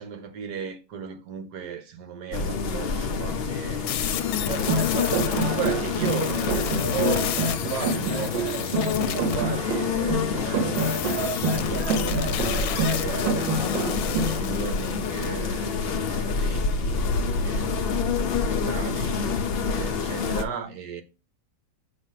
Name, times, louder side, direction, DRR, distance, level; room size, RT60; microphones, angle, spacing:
voice 1, 0.0-12.3 12.7-17.0 17.3-19.4 19.7-21.0, right 7 dB, 70° right, 1.5 m, -36 dB
sound 1, 2.3-20.4, left 5 dB, 65° left, 0.6 m, -27 dB
sound 2, 3.9-9.4 10.7-15.3, left 9 dB, 85° left, 1.3 m, -33 dB
sound 3, 4.5-14.4, right 3 dB, 90° right, 1.6 m, -28 dB
7.4 x 3.4 x 5.5 m
omnidirectional pair, 1.9 m